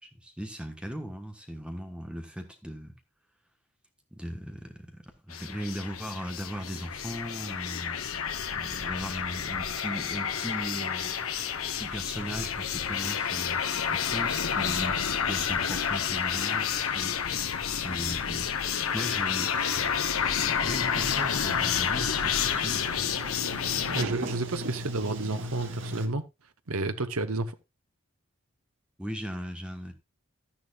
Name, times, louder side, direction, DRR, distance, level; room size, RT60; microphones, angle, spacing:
voice 1, 0.0-2.9 4.1-8.0 8.5-11.3 11.7-13.6 13.9-17.2 17.4-18.5 18.9-19.6 20.4-23.0 29.0-29.9, equal, 5° right, 1.3 m, -38 dB
sound 1, 5.3-24.0, left 7 dB, 75° left, 1.1 m, -30 dB
Sliding door, 18.2-26.1, equal, 55° right, 1.8 m, -40 dB
voice 2, 23.9-26.2 26.7-27.5, right 2 dB, 85° right, 1.1 m, -30 dB
12.5 x 10.5 x 2.4 m
head